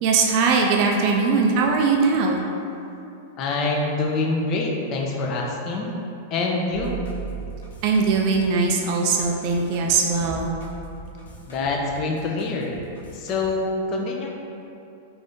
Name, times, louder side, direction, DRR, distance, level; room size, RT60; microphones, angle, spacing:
voice 1, 0.0-2.4 7.8-10.5, right 4 dB, 45° right, 0 dB, 0.3 m, -20 dB
voice 2, 3.4-6.0 6.3-7.0 11.5-12.7 13.1-14.3, left 3 dB, 40° left, -1 dB, 0.5 m, -25 dB
sound 1, 6.7-13.5, right 4 dB, 80° left, 0.6 m, -38 dB
2.6 x 2.6 x 3.4 m, 2.7 s
hypercardioid pair, 130°, 0 cm